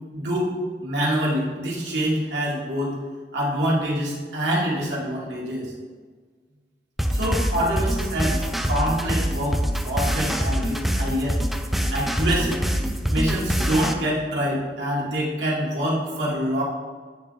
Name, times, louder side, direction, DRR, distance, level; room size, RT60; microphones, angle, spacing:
voice 1, 0.1-0.5 0.8-3.0 3.3-5.7 7.1-9.6 9.8-11.4 11.9-12.6 13.1-16.6, equal, 85° right, -5 dB, 2.0 m, -25 dB
sound 1, 7.0-13.9, equal, ahead, 0.4 m, -24 dB
9.1 x 3.7 x 3.9 m, 1.5 s
head